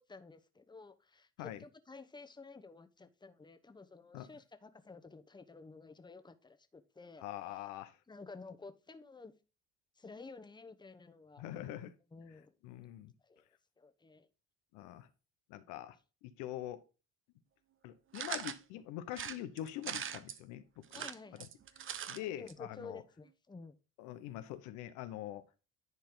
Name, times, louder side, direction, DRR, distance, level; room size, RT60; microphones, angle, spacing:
voice 1, 0.0-7.2 8.1-9.3 10.0-11.5 12.1-12.5 13.2-13.4 13.8-14.3 20.9-21.5 22.1-23.8, left 4 dB, 15° left, 1.0 m, -52 dB
voice 2, 7.2-8.0 11.4-11.9 12.6-13.1 14.7-15.1 15.5-16.0 16.2-16.8 17.8-21.1 21.4-21.5 22.1-23.0 24.0-25.4, left 13 dB, 85° left, 0.9 m, -44 dB
sound 1, 18.1-18.6 19.1-20.4 20.8-22.2 22.5-22.6 22.8-22.9, right 8 dB, 45° right, 0.7 m, -41 dB
10.5 x 4.4 x 3.8 m
supercardioid pair, 80°, 30 cm